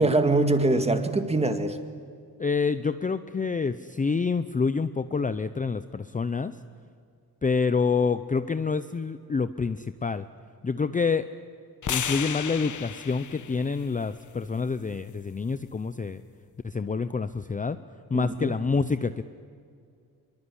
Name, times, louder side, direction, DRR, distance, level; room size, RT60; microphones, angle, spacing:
voice 1, 0.0-1.8 18.1-18.5, right 2 dB, 15° right, 7 dB, 2.1 m, -23 dB
voice 2, 2.4-6.5 7.4-10.3 10.6-11.3 11.9-16.2 16.6-17.8 18.1-19.2, left 4 dB, 20° left, 11 dB, 0.6 m, -27 dB
sound 1, 11.8-16.0, left 8 dB, 50° left, 1.1 m, -36 dB
25.0 x 22.5 x 9.9 m, 2.3 s
wide cardioid pair, 130°, 38 cm